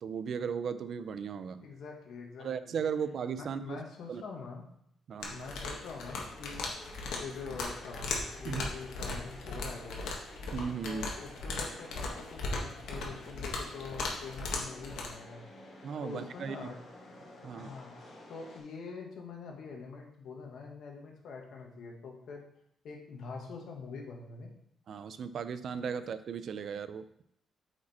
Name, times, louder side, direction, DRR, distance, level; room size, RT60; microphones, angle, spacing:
voice 1, 0.0-1.7 2.4-3.8 4.1-4.2 5.1-5.4 8.5-8.6 10.5-11.1 15.8-16.6 17.4-17.7 24.9-27.0, right 6 dB, 55° right, 12 dB, 0.5 m, -36 dB
voice 2, 1.6-2.8 3.4-4.6 5.3-6.7 7.2-10.1 10.8-15.5 16.0-16.8 17.5-18.0 18.3-22.4 22.8-24.5, left 4 dB, 70° left, 1 dB, 1.6 m, -45 dB
sound 1, 5.2-15.1, left 3 dB, 85° left, 1.5 m, -38 dB
sound 2, 5.4-18.6, left 1 dB, 50° left, 3.3 m, -52 dB
8.4 x 5.1 x 4.2 m, 0.74 s
cardioid pair, 140°, 0 cm